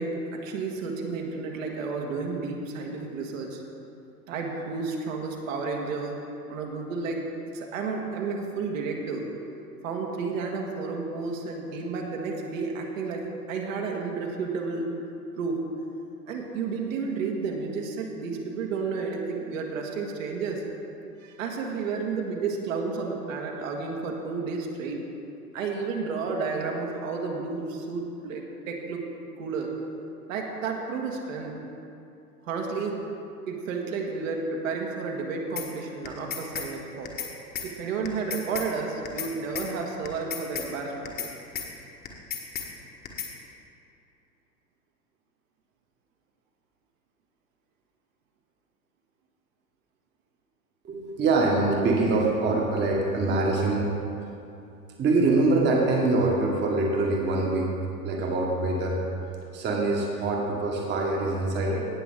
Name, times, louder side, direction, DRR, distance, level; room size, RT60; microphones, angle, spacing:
voice 1, 0.0-3.6 4.3-6.1 6.5-7.2 7.5-9.3 9.8-14.9 15.4-15.6 16.3-20.6 21.2-25.0 25.5-29.1 29.4-29.7 30.3-31.6 32.4-33.0 33.5-37.1 37.6-41.3, right 4 dB, 55° right, 1 dB, 1.8 m, -31 dB
sound 1, 35.6-35.7 36.0-36.7 37.0-37.3 37.5-37.7 38.0-38.7 39.0-39.3 39.5-39.7 40.0-40.7 41.0-41.3 41.5-41.7 42.0-42.7 43.0-43.3, left 8 dB, 20° left, 1.3 m, -33 dB
voice 2, 50.8-53.9 55.0-57.7 58.0-59.0 59.5-61.9, right 2 dB, 20° right, -1 dB, 1.5 m, -24 dB
17.5 x 7.4 x 3.7 m, 2.8 s
figure-of-eight pair, 105°, 48 cm